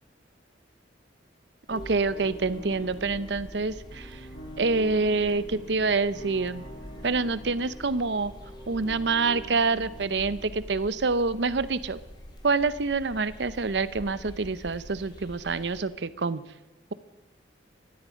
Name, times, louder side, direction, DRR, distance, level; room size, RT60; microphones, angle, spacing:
sound 1, 1.7-10.6, equal, 90° left, 5.5 m, -45 dB
sound 2, 1.7-15.9, equal, 25° left, 2.7 m, -46 dB
voice 1, 1.7-4.2 4.6-6.6 7.0-8.3 8.7-12.0 12.4-16.4, right 4 dB, 75° right, 15 dB, 0.8 m, -27 dB
19.0 x 13.0 x 5.2 m, 1.1 s
head